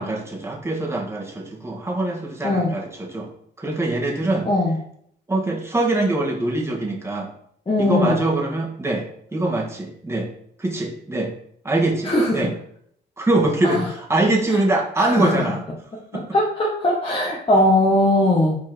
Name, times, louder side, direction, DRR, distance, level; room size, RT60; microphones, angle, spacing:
voice 1, 0.0-3.3 3.6-4.5 5.3-7.3 7.8-10.3 10.6-11.3 11.6-12.5 13.2-15.6 16.1-16.2, right 2 dB, 15° right, -1 dB, 1.9 m, -23 dB
voice 2, 4.4-4.8 7.7-8.2 12.0-12.5 13.6-13.9 15.0-15.5 16.1-18.6, left 1 dB, 25° left, -3 dB, 1.5 m, -20 dB
5.7 x 4.6 x 4.5 m, 0.66 s
cardioid pair, 90°, 20 cm